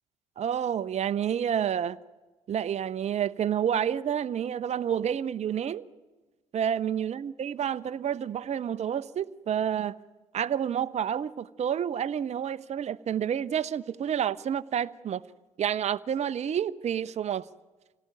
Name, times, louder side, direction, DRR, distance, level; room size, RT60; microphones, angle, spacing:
voice 1, 0.4-2.0 2.5-5.9 6.5-10.0 10.3-15.2 15.6-17.5, right 9 dB, 40° right, 0.7 m, -29 dB
26.5 x 17.5 x 9.1 m
hypercardioid pair, 55°, 17 cm